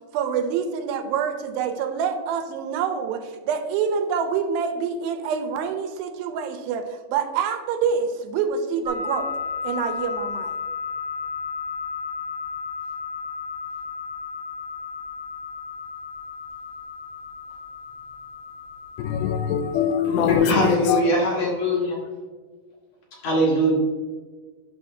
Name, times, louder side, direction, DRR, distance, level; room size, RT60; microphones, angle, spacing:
voice 1, 0.1-9.3 9.6-10.5, right 6 dB, 80° right, 2.4 m, -26 dB
sound 1, 8.9-20.4, left 5 dB, 30° right, 2.1 m, -34 dB
voice 2, 19.0-21.0, left 7 dB, 90° left, 2.5 m, -23 dB
voice 3, 20.3-22.0 23.2-23.7, equal, 55° left, 2.3 m, -21 dB
11.0 x 4.9 x 2.6 m
omnidirectional pair, 4.3 m